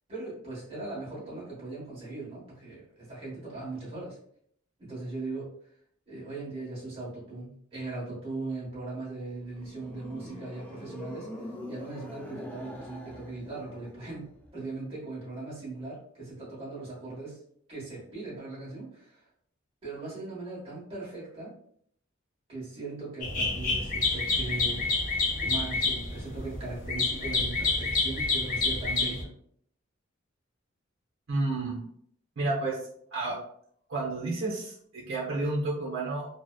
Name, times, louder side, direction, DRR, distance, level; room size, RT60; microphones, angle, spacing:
voice 1, 0.1-4.2 4.8-5.5 6.1-14.2 14.5-17.4 17.7-19.3 19.8-21.5 22.5-24.9 25.4-29.3, right 2 dB, 30° right, -7 dB, 1.2 m, -39 dB
sound 1, 9.2-14.6, left 1 dB, 10° left, 0.3 m, -44 dB
sound 2, 23.2-29.2, left 3 dB, 45° left, 0.6 m, -28 dB
voice 2, 31.3-31.8 32.4-32.8 33.1-33.4 33.9-36.3, right 2 dB, 75° right, -3 dB, 0.6 m, -30 dB
2.7 x 2.0 x 2.3 m, 0.65 s
head